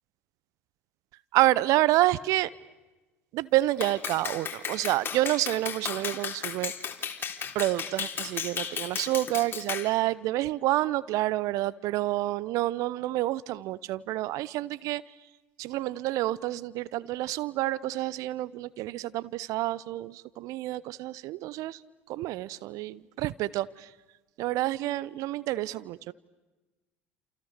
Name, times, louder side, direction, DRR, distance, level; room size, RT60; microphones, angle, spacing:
voice 1, 1.3-2.5 3.3-6.7 7.5-15.0 15.6-21.8 22.1-23.9 24.4-26.1, right 16 dB, 55° right, 0.8 m, -28 dB
Clapping, 3.8-9.9, left 7 dB, 35° left, 3.6 m, -34 dB
29.5 x 28.0 x 6.7 m
figure-of-eight pair, 65°, 7 cm